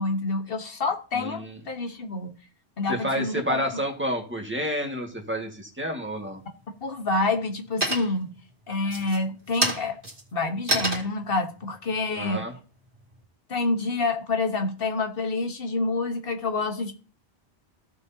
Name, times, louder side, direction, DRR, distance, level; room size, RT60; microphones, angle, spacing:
voice 1, 0.0-2.3 2.8-3.6 6.8-8.3 8.7-10.0 10.3-12.4 13.5-16.9, left 3 dB, 60° left, 1.4 m, -27 dB
voice 2, 1.1-1.6 2.9-6.4 12.1-12.5, equal, 10° right, 1.7 m, -29 dB
sound 1, 6.2-6.7 7.1-7.6 7.8-8.4 8.8-13.2, right 1 dB, 35° right, 2.3 m, -30 dB
15.0 x 6.4 x 2.8 m
omnidirectional pair, 1.1 m